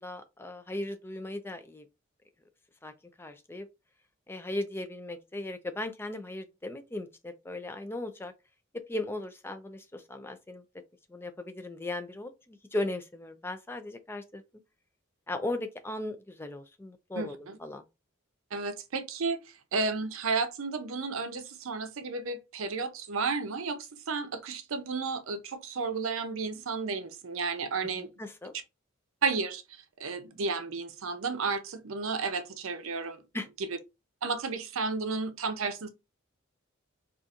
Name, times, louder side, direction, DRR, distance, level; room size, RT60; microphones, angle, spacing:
voice 1, 0.0-1.8 2.8-2.9 3.2-3.7 4.3-8.3 8.9-10.6 11.1-14.4 15.3-17.8 28.2-28.5 33.3-33.5, left 2 dB, 10° left, 0.3 m, -37 dB
voice 2, 17.2-17.6 18.5-19.4 19.7-28.1 29.2-33.2 33.6-33.8 34.2-35.9, right 4 dB, 75° right, 0.6 m, -32 dB
4.2 x 2.4 x 2.4 m
head